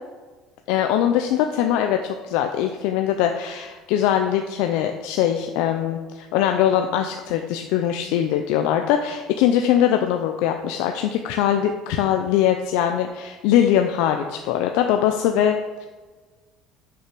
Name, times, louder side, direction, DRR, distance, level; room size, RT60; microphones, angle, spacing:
voice 1, 0.7-15.9, left 10 dB, 80° left, 5 dB, 0.5 m, -22 dB
6.1 x 5.8 x 6.1 m, 1.3 s
cardioid pair, 150°, 0 cm